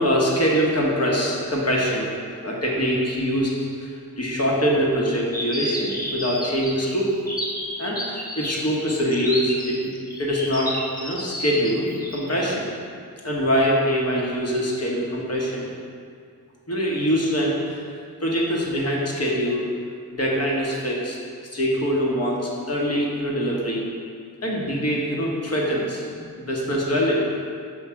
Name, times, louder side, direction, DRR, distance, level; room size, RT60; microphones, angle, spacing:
voice 1, 0.0-2.1 2.4-3.5 3.8-3.9 4.2-7.1 7.8-9.9 10.2-10.7 11.0-12.7 13.2-15.7 16.7-17.9 18.2-19.7 20.1-21.2 21.5-23.9 24.4-27.2, equal, 40° left, -3 dB, 1.3 m, -23 dB
sound 1, 5.3-12.3, equal, 20° left, 1.2 m, -31 dB
6.2 x 3.2 x 5.8 m, 2.2 s
wide cardioid pair, 70°, 39 cm